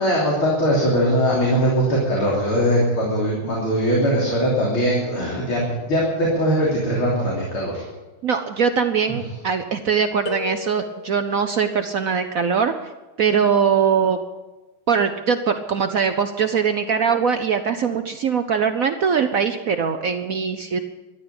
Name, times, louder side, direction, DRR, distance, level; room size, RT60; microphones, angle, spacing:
voice 1, 0.0-7.8 9.1-9.2, equal, 80° left, -4 dB, 4.1 m, -21 dB
voice 2, 8.2-12.7 13.2-14.2 14.9-20.8, right 6 dB, 65° right, 8 dB, 0.8 m, -21 dB
sound 1, 10.3-11.4, left 7 dB, 55° left, 1.6 m, -34 dB
13.5 x 12.0 x 8.7 m, 1.2 s
omnidirectional pair, 2.3 m